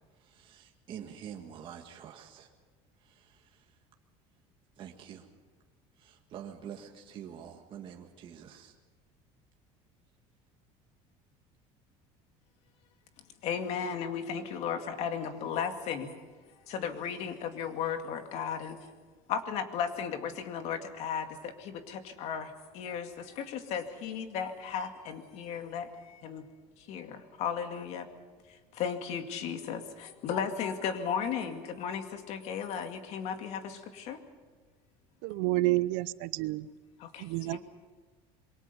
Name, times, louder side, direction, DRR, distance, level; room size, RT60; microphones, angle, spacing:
voice 1, 0.2-2.5 3.0-3.7 4.8-5.3 6.0-8.7, right 9 dB, 40° right, 2 dB, 1.7 m, -46 dB
voice 2, 13.4-16.2 16.7-18.9 19.3-26.5 26.8-28.1 28.5-34.2 37.0-37.6, left 7 dB, 55° left, 6 dB, 2.3 m, -35 dB
voice 3, 35.2-36.7 37.2-37.6, right 19 dB, 75° right, 16 dB, 0.8 m, -29 dB
27.0 x 23.0 x 5.5 m, 1.4 s
cardioid pair, 160°, 13 cm